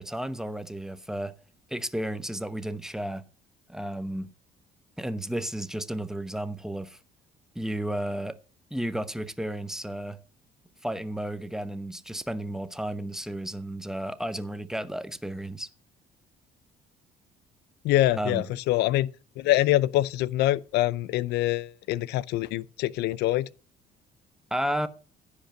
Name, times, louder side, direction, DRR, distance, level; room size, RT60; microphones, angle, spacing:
voice 1, 0.0-1.3 1.7-3.2 3.7-4.3 5.0-7.0 7.5-8.4 8.7-10.2 10.8-15.7 18.1-18.4 24.5-24.9, right 1 dB, 5° right, 0.9 m, -32 dB
voice 2, 17.8-19.1 19.4-23.5, left 15 dB, 80° left, 0.5 m, -25 dB
15.5 x 5.2 x 7.6 m
cardioid pair, 110°, 17 cm